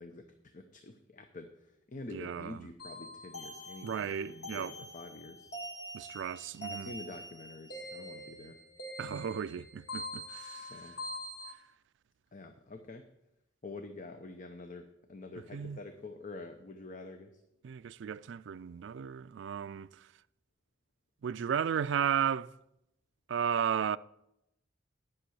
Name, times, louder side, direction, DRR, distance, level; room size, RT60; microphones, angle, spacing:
voice 1, 0.0-5.5 6.7-8.6 10.5-11.0 12.3-13.0 13.6-17.4, left 3 dB, 40° left, 0.7 m, -47 dB
voice 2, 2.1-2.6 3.8-4.7 5.9-6.9 9.0-10.7 15.5-15.8 17.6-19.9 21.2-22.5 23.3-24.0, right 8 dB, 65° right, 0.3 m, -34 dB
sound 1, 2.8-11.5, equal, 55° left, 1.9 m, -44 dB
10.5 x 6.1 x 7.9 m
head